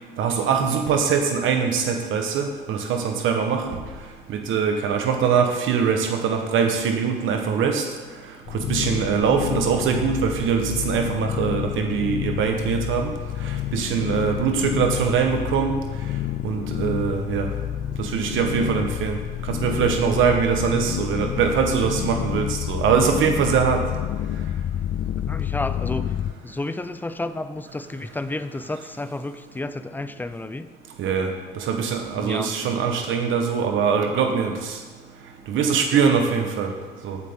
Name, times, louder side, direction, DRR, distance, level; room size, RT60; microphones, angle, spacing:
voice 1, 0.2-3.6 4.3-7.8 8.5-13.1 13.7-15.7 16.4-17.5 18.0-19.2 19.5-23.8 31.0-31.3 31.7-34.5 35.5-36.7 37.0-37.2, right 6 dB, 80° right, 4 dB, 1.1 m, -22 dB
sound 1, 8.5-26.3, left 11 dB, 55° left, 0.4 m, -29 dB
voice 2, 25.3-26.1 26.4-30.7 32.2-32.7 35.9-36.0, left 2 dB, 10° left, 12 dB, 0.6 m, -31 dB
15.0 x 8.3 x 3.6 m, 1.4 s
cardioid pair, 90°, 20 cm